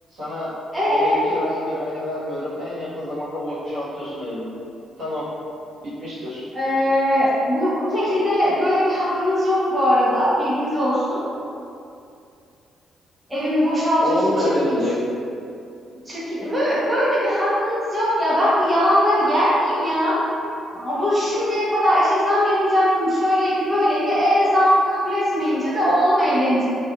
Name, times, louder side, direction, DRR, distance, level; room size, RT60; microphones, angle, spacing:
voice 1, 0.1-0.5 0.9-4.5 5.0-5.2 5.8-6.4 14.0-15.0, left 1 dB, 75° right, -11 dB, 1.2 m, -27 dB
voice 2, 0.7-1.2 6.5-11.2 13.3-14.5 16.1-20.2 20.7-26.7, equal, 15° right, -10 dB, 0.8 m, -20 dB
2.6 x 2.3 x 2.4 m, 2.5 s
cardioid pair, 90°, 0 cm